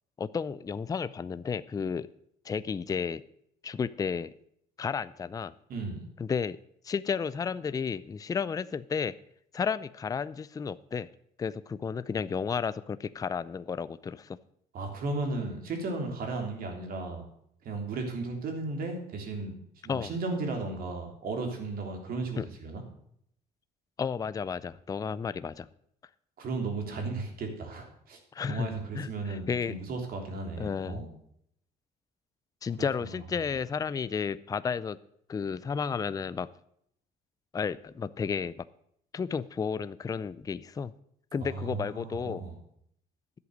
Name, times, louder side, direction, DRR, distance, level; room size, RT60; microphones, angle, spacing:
voice 1, 0.2-2.1 2.4-3.2 3.6-4.3 4.8-5.5 6.2-6.6 6.8-9.1 9.5-11.1 11.4-14.4 19.9-20.1 22.4-22.5 24.0-25.7 28.3-28.7 29.0-29.7 30.6-31.0 32.6-35.0 35.3-36.5 37.5-38.6 39.1-40.9 41.3-42.4, left 6 dB, 20° left, 16 dB, 0.4 m, -32 dB
voice 2, 5.7-6.1 14.7-17.2 17.6-19.5 19.8-22.8 26.4-28.2 28.4-31.1 33.0-33.2 41.4-42.5, right 3 dB, 60° right, 3 dB, 3.3 m, -35 dB
11.0 x 8.1 x 6.6 m, 0.70 s
cardioid pair, 110°, 17 cm